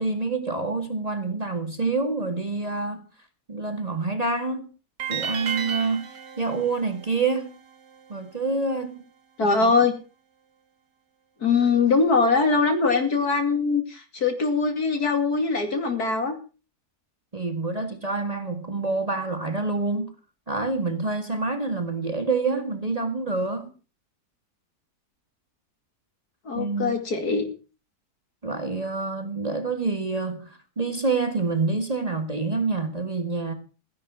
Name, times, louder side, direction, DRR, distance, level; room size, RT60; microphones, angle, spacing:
voice 1, 0.0-3.0 3.5-4.7 5.1-6.0 6.4-7.5 8.1-9.0 9.4-9.7 17.3-20.1 20.5-23.7 26.5-27.0 28.4-33.5, right 3 dB, 25° right, 1.8 m, -27 dB
sound 1, 5.0-8.1, right 7 dB, 80° right, 2.2 m, -34 dB
voice 2, 9.4-9.9 11.4-16.3 26.4-27.4, left 4 dB, 65° left, 3.1 m, -22 dB
15.5 x 10.5 x 6.1 m
omnidirectional pair, 1.8 m